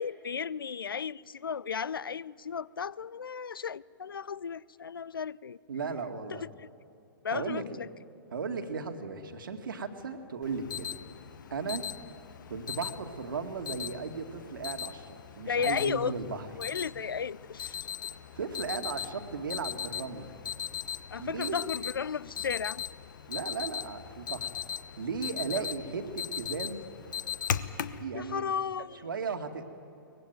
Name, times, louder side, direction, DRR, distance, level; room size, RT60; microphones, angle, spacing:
voice 1, 0.0-5.6 6.3-6.7 7.2-7.9 15.5-16.2 16.6-17.8 21.1-22.8 25.5-25.7 27.9-29.1, left 6 dB, 75° left, 0.5 m, -34 dB
voice 2, 5.7-6.4 7.3-7.6 8.3-10.9 11.5-11.8 12.5-16.5 18.3-20.3 21.2-21.6 23.3-24.5 25.0-26.8 28.0-28.4 29.0-29.6, right 5 dB, 65° right, 2.1 m, -36 dB
Alarm, 10.4-28.0, left 9 dB, 60° left, 1.0 m, -39 dB
23.0 x 20.0 x 9.3 m
figure-of-eight pair, 115°, 12 cm